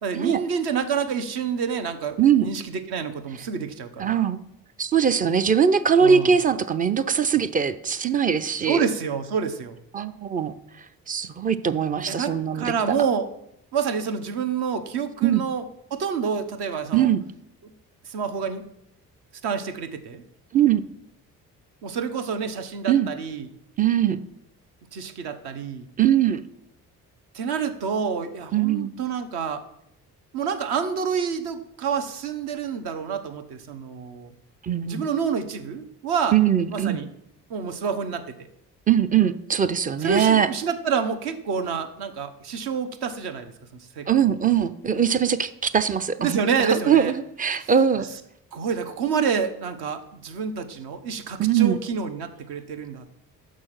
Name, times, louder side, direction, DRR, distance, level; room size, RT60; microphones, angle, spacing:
voice 1, 0.0-4.2 6.0-6.3 8.6-9.8 12.0-13.3 13.7-17.1 17.6-17.7 18.1-18.6 19.4-20.2 21.8-23.5 24.9-25.9 27.3-29.6 30.3-34.3 34.9-36.4 36.7-37.1 37.5-38.2 40.0-43.5 44.0-44.3 46.2-47.1 48.0-48.1 48.5-53.1, right 6 dB, 55° right, 9 dB, 0.9 m, -28 dB
voice 2, 4.0-4.4 4.8-8.8 9.9-10.5 11.1-13.0 15.2-15.4 16.9-17.2 20.5-20.9 22.9-23.1 23.8-24.2 26.0-26.4 28.5-28.9 34.6-35.0 36.3-37.0 38.9-40.5 44.1-48.1 51.4-51.8, right 8 dB, 20° right, 13 dB, 0.4 m, -21 dB
6.1 x 6.1 x 6.0 m, 0.77 s
figure-of-eight pair, 45°, 47 cm